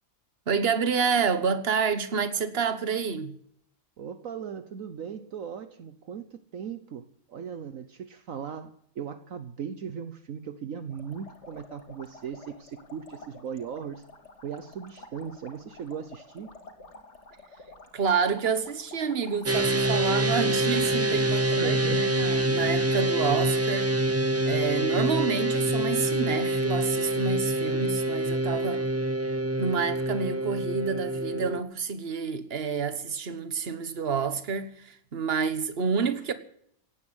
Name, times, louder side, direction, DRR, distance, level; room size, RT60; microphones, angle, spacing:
voice 1, 0.5-3.4 17.9-23.9 24.4-28.8 29.6-36.3, right 6 dB, 45° right, 1.5 m, -28 dB
voice 2, 4.0-14.0 14.4-16.5 21.3-22.1, right 7 dB, 65° right, 1.3 m, -38 dB
sound 1, 10.9-20.9, left 2 dB, 50° left, 2.7 m, -50 dB
sound 2, 19.5-31.6, right 1 dB, 25° right, 0.3 m, -26 dB
17.5 x 9.8 x 8.0 m
omnidirectional pair, 1.5 m